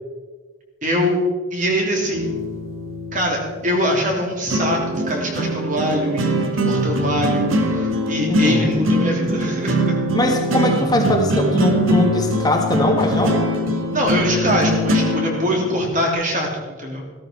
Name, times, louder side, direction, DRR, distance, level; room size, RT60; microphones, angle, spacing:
voice 1, 0.8-1.2 1.5-2.4 3.1-6.3 6.7-10.0 13.9-17.1, equal, 40° right, 0 dB, 3.1 m, -23 dB
sound 1, 2.1-16.1, equal, 90° right, 1.6 m, -22 dB
voice 2, 8.3-8.7 10.1-13.4, left 1 dB, 20° left, 2 dB, 1.5 m, -21 dB
15.0 x 13.5 x 4.5 m, 1.4 s
head